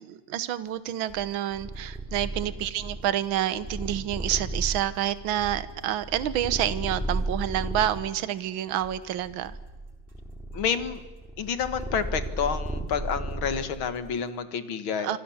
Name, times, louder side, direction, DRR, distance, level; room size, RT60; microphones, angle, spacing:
voice 1, 0.0-9.6 15.0-15.2, right 11 dB, 70° right, 15 dB, 1.8 m, -28 dB
sound 1, 0.7-14.3, right 1 dB, 35° right, 4.4 m, -50 dB
Purr, 1.5-8.0 8.7-13.9, right 2 dB, ahead, 3.1 m, -34 dB
voice 2, 10.5-11.0 11.4-15.2, left 7 dB, 75° left, 11 dB, 2.4 m, -29 dB
26.0 x 25.5 x 7.2 m, 1.2 s
omnidirectional pair, 2.3 m